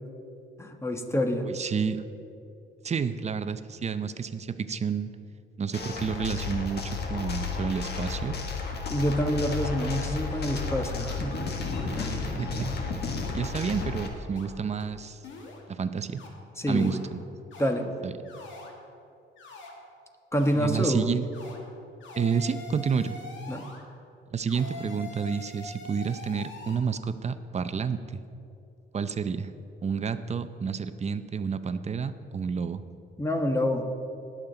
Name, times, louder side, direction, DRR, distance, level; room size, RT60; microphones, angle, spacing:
voice 1, 0.6-1.5 8.9-11.4 12.0-12.1 16.6-16.9 17.6-17.9 20.3-21.1 23.5-23.7 33.2-33.8, equal, 15° left, 5 dB, 1.2 m, -27 dB
voice 2, 1.4-2.0 2.8-5.1 5.6-8.4 12.3-12.7 13.3-15.2 15.7-16.2 16.7-17.2 18.0-18.1 20.5-21.2 22.2-23.2 24.3-28.0 28.9-29.5 29.8-32.8, right 6 dB, 35° right, 12 dB, 0.6 m, -30 dB
sound 1, 5.7-14.1, left 4 dB, 55° left, 1.5 m, -32 dB
sound 2, 7.3-7.4 7.9-8.2 8.7-8.8 9.0-9.2 9.6-9.8 10.2-10.3 10.6-11.0 11.3-11.9 12.6-12.7 13.2-13.4 13.8-13.9 14.4-14.5 14.8-14.9 15.2-15.6 16.2-16.3 16.7-17.0 17.5-17.7 18.3-18.7 19.4-19.7 20.3-20.6 21.3-21.6 22.0-23.8 24.5-26.8, left 2 dB, 75° left, 1.9 m, -44 dB
19.0 x 7.4 x 3.9 m, 2.6 s
cardioid pair, 90°, 20 cm